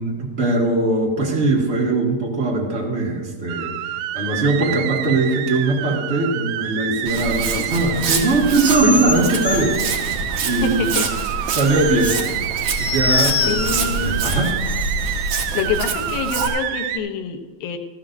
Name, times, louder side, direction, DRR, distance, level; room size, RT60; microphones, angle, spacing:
voice 1, 0.0-10.0 10.4-11.0 11.5-12.2 12.8-14.6, right 2 dB, 25° right, -2 dB, 1.6 m, -21 dB
sound 1, 3.5-17.0, right 11 dB, 80° right, 1.9 m, -28 dB
Walk footsteps, 7.1-16.5, right 4 dB, 60° right, 2.0 m, -26 dB
sound 2, 8.6-15.2, left 4 dB, 55° left, 5.4 m, -26 dB
voice 2, 10.6-11.1 13.5-14.3 15.5-17.8, left 6 dB, 85° left, 4 dB, 2.7 m, -26 dB
18.0 x 13.5 x 2.6 m, 1.4 s
omnidirectional pair, 4.0 m